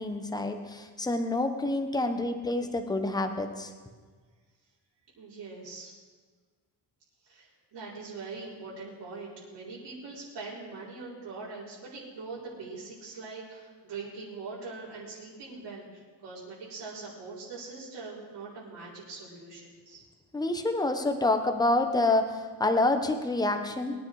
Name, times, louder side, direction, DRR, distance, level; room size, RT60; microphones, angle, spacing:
voice 1, 0.0-3.7 20.3-24.0, left 2 dB, 10° left, 6 dB, 1.0 m, -27 dB
voice 2, 5.2-5.9 7.2-20.0, right 4 dB, 80° right, -7 dB, 5.1 m, -42 dB
23.0 x 10.5 x 4.9 m, 1.5 s
wide cardioid pair, 175°, 41 cm